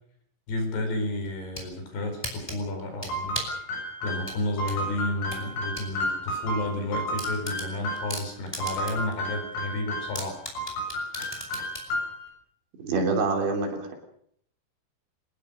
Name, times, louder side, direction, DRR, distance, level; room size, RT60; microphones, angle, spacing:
voice 1, 0.5-3.4 4.0-10.4, left 2 dB, 55° left, 5 dB, 6.7 m, -31 dB
sound 1, 1.2-1.7 2.2-3.6 4.2-5.9 6.3-6.4 6.7-6.8 7.2-9.1 9.5-9.6 10.1-11.9, equal, 5° left, 4.6 m, -36 dB
sound 2, 3.1-8.2 8.6-10.2 10.6-12.3, equal, 85° left, 10.0 m, -32 dB
voice 2, 12.8-13.9, right 3 dB, 60° right, 3 dB, 5.4 m, -26 dB
23.5 x 20.5 x 6.6 m, 0.67 s
omnidirectional pair, 6.0 m